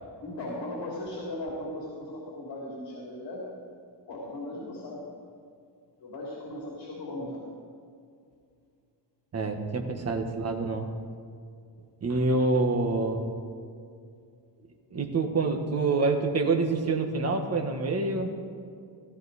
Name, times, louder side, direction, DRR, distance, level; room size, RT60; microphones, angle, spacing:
voice 1, 0.2-3.4 4.1-5.0 6.0-7.4, left 1 dB, 65° left, -4 dB, 3.4 m, -37 dB
voice 2, 9.3-10.9 12.0-13.2 14.9-18.3, right 3 dB, 35° right, 5 dB, 1.3 m, -26 dB
16.5 x 15.0 x 4.1 m, 2.3 s
wide cardioid pair, 175°, 42 cm